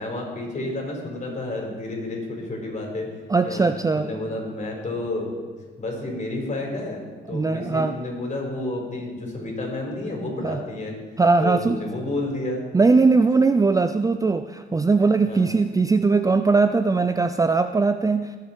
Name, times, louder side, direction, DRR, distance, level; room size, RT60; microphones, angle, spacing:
voice 1, 0.0-3.1 3.4-3.7 3.9-5.3 5.8-7.0 7.3-10.9 11.4-12.7 13.3-13.4 15.2-15.5, left 2 dB, 35° left, 0 dB, 4.7 m, -30 dB
voice 2, 3.3-4.1 7.3-7.9 10.4-10.6 11.2-11.8 12.7-18.3, right 4 dB, 15° right, 9 dB, 0.5 m, -20 dB
19.0 x 7.4 x 4.6 m, 1.5 s
cardioid pair, 90°, 20 cm